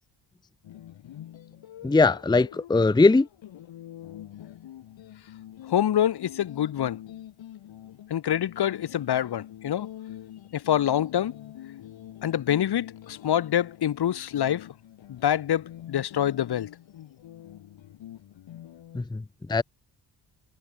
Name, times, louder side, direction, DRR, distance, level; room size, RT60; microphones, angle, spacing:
sound 1, 0.6-19.0, left 12 dB, 85° left, 2.9 m, -45 dB
voice 1, 1.8-3.3 18.9-19.2 19.5-19.6, left 3 dB, 10° left, 0.7 m, -20 dB
voice 2, 5.7-7.0 8.1-9.9 10.7-11.3 12.2-14.6 15.1-16.7, left 10 dB, 60° left, 1.3 m, -26 dB
cardioid pair, 125°, 44 cm